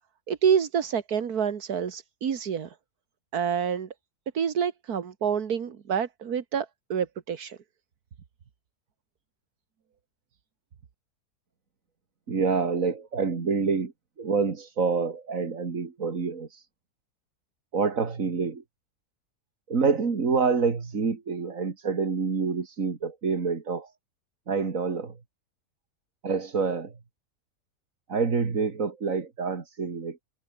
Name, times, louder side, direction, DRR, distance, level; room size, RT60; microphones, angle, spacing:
voice 1, 0.3-2.7 3.3-3.9 4.3-7.6, right 7 dB, 80° right, 2.0 m, -27 dB
voice 2, 12.3-13.9 14.2-16.5 17.7-18.6 19.7-23.9 24.5-25.1 26.2-26.9 28.1-30.2, right 5 dB, 60° right, 2.6 m, -27 dB
omnidirectional pair, 1.6 m